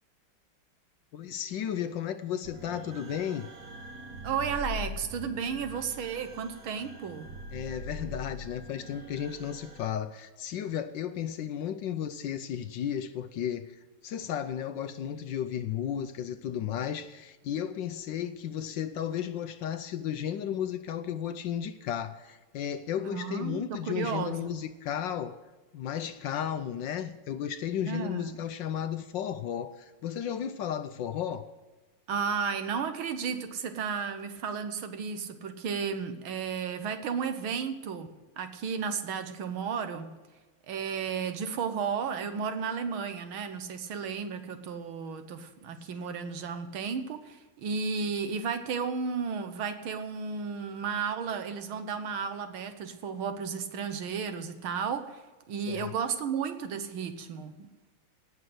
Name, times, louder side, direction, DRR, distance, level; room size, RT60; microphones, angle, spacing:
voice 1, 1.1-3.5 7.5-25.4 25.7-31.5 55.7-55.9, left 9 dB, 70° left, 1.2 m, -34 dB
sound 1, 2.4-9.9, left 1 dB, 45° right, 1.4 m, -43 dB
voice 2, 4.2-7.3 23.0-24.6 27.9-28.4 32.1-38.1 38.4-40.2 40.7-57.9, right 6 dB, 75° right, 1.9 m, -33 dB
17.5 x 6.1 x 7.9 m
omnidirectional pair, 2.3 m